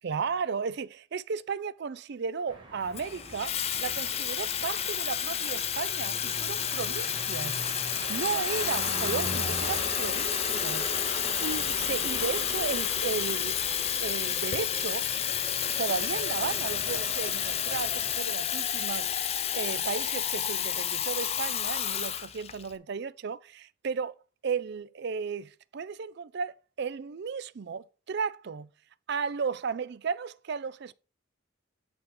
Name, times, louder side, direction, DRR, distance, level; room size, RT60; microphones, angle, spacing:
voice 1, 0.0-7.6 8.1-13.6 14.0-15.1 15.8-19.3 19.5-24.2 24.4-28.7 29.1-30.9, right 5 dB, 55° right, 0.4 m, -34 dB
sound 1, 2.5-18.2, right 2 dB, 25° right, 2.0 m, -40 dB
Water tap faucet / Fill (with liquid), 3.0-22.7, left 9 dB, 30° left, 0.5 m, -30 dB
8.6 x 4.1 x 3.8 m
head